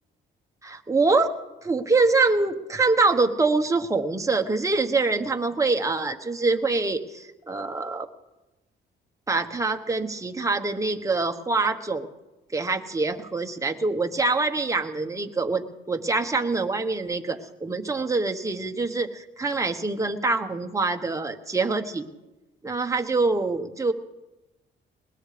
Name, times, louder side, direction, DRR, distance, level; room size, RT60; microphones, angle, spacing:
voice 1, 0.6-1.3 1.6-8.1 9.3-12.1 12.5-22.1 22.6-23.9, right 3 dB, 15° right, 5 dB, 1.2 m, -25 dB
21.0 x 19.5 x 3.4 m, 1.0 s
cardioid pair, 90°, 20 cm